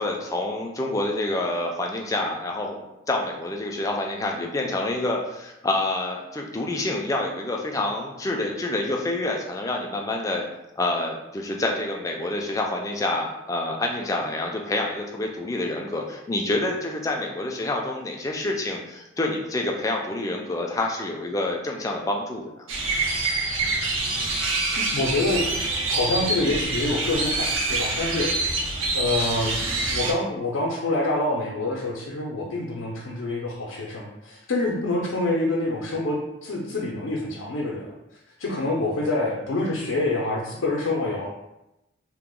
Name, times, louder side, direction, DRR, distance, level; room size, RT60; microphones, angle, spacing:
voice 1, 0.0-2.8 3.1-10.4 10.8-22.6, left 2 dB, 15° left, 0 dB, 0.3 m, -27 dB
sound 1, 22.7-30.1, right 3 dB, 80° right, 0.6 m, -26 dB
voice 2, 24.8-25.5 25.9-28.6 28.9-37.9 38.4-41.3, left 2 dB, 85° left, -3 dB, 0.5 m, -26 dB
2.9 x 2.0 x 3.6 m, 0.92 s
head